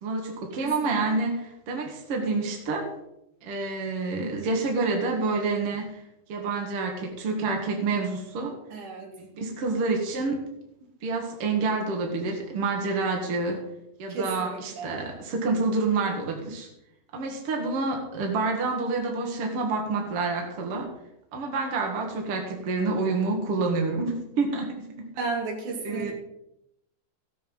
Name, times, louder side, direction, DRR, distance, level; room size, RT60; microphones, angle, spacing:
voice 1, 0.0-2.9 3.4-6.0 6.3-8.6 9.1-10.4 11.0-13.6 14.0-16.7 17.1-20.9 21.3-24.9 25.8-26.1, right 3 dB, 55° right, 2 dB, 2.5 m, -28 dB
voice 2, 0.6-0.9 8.7-9.1 14.1-14.9 25.1-26.1, right 4 dB, 85° right, 0 dB, 3.8 m, -33 dB
15.5 x 7.2 x 5.4 m, 0.84 s
omnidirectional pair, 3.4 m